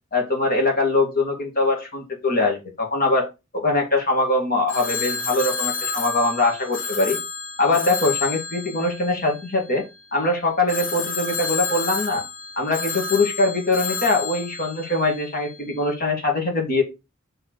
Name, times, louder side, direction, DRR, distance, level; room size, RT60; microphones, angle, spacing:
voice 1, 0.1-3.3 3.5-7.2 7.6-9.8 10.1-12.2 12.6-16.8, left 2 dB, 45° left, 1 dB, 2.3 m, -22 dB
Telephone, 4.7-9.9 10.7-15.6, left 5 dB, 75° left, 2.4 m, -30 dB
6.3 x 4.6 x 4.7 m, 0.26 s
head